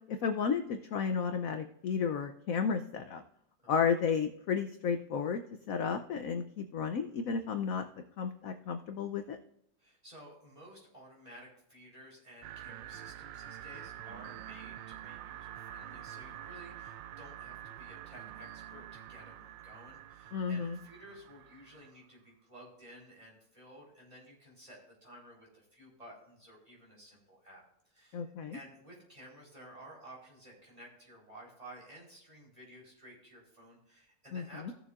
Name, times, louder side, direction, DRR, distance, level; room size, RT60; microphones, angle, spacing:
voice 1, 0.1-3.2 3.7-5.4 5.7-7.8 8.2-9.4 20.3-20.8 28.1-28.6 34.3-34.7, left 6 dB, 65° left, 7 dB, 0.9 m, -32 dB
voice 2, 9.8-34.7, right 1 dB, 20° right, -3 dB, 4.1 m, -54 dB
sound 1, 12.4-21.9, right 12 dB, 80° right, 1.3 m, -47 dB
17.0 x 7.0 x 2.5 m, 0.76 s
omnidirectional pair, 2.0 m